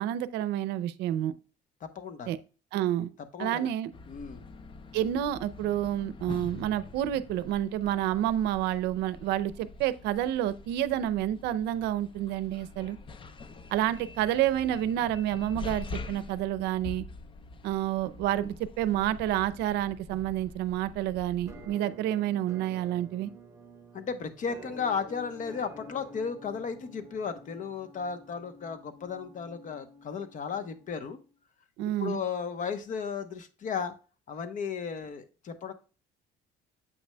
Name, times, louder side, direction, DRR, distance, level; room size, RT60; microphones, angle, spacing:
voice 1, 0.0-1.3 2.3-2.4 2.7-3.1 3.4-3.9 4.9-13.0 13.7-17.0 17.6-23.3 31.8-32.2, right 12 dB, 90° right, 0.5 m, -29 dB
voice 2, 1.8-2.3 3.3-3.7 4.1-4.4 23.9-31.2 32.0-33.9 34.3-35.7, left 6 dB, 50° left, 0.9 m, -35 dB
sound 1, 3.9-21.7, left 3 dB, 30° left, 0.5 m, -45 dB
Musical instrument, 21.5-31.3, equal, 15° right, 1.1 m, -50 dB
7.9 x 6.0 x 2.2 m
cardioid pair, 110°, 17 cm